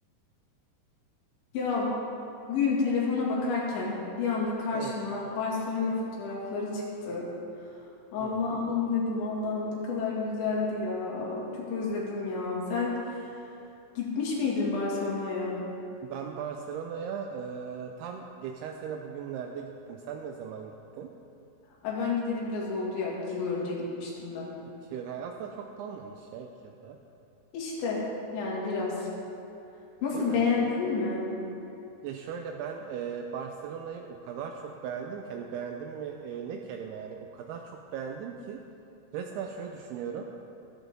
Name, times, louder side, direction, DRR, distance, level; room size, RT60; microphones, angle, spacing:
voice 1, 1.5-2.0 2.5-7.3 8.1-13.2 14.0-15.6 21.8-24.5 27.5-28.1 28.3-29.1 30.0-31.3, left 4 dB, 80° left, -5 dB, 4.5 m, -30 dB
voice 2, 4.7-5.1 8.2-8.6 16.0-21.1 24.6-27.0 30.1-30.4 32.0-38.6 39.1-40.2, right 7 dB, 85° right, 3 dB, 2.3 m, -38 dB
13.5 x 13.5 x 3.7 m, 2.8 s
omnidirectional pair, 5.1 m